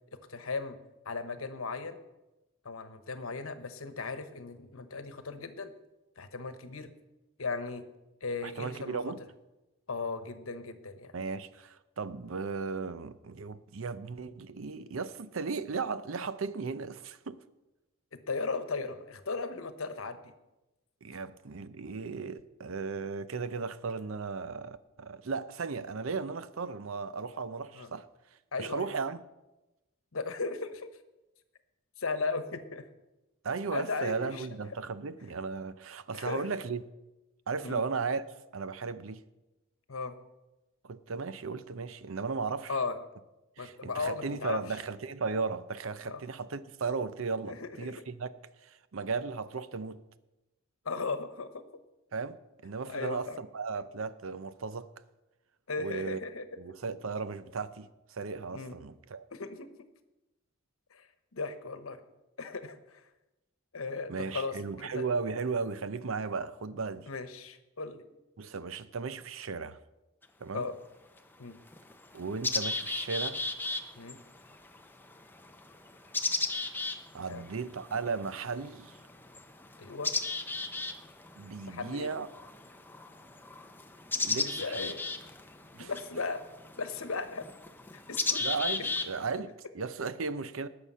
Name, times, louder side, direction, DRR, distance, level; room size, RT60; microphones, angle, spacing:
voice 1, 0.3-0.8 1.0-2.0 2.6-5.7 6.2-6.9 7.4-7.8 8.2-9.0 9.9-11.1 18.1-20.3 27.7-27.9 28.5-28.9 30.1-30.9 32.0-32.9 33.7-34.5 36.1-36.4 37.6-37.8 39.9-40.1 42.7-43.0 43.6-44.6 46.1-46.2 47.5-47.9 50.8-51.6 52.9-53.4 55.7-56.4 58.5-58.8 59.3-59.7 60.9-61.1 61.3-62.0 62.4-63.0 63.7-65.1 67.1-68.0 70.5-70.7 71.4-71.6 74.0-74.2 77.3-77.4 79.8-80.1 81.7-82.1 84.1-85.0 85.8-86.4 86.8-87.4 87.9-88.4, left 4 dB, 85° left, 1.1 m, -36 dB
voice 2, 8.4-9.2 11.1-17.4 21.0-28.1 28.6-29.2 33.4-36.8 37.5-38.2 38.5-39.2 40.8-42.7 43.6-48.3 48.6-50.0 52.1-52.4 52.6-54.9 55.8-56.2 56.6-59.3 64.1-67.1 68.4-69.8 70.4-70.7 72.1-73.4 76.5-76.9 77.1-79.0 81.4-82.3 84.2-84.9 85.7-85.9 88.4-90.7, right 4 dB, 75° right, 0.6 m, -36 dB
sound 1, 70.2-70.3 71.2-71.3 71.7-89.4, left 3 dB, 10° left, 0.7 m, -36 dB
19.0 x 6.7 x 5.6 m
head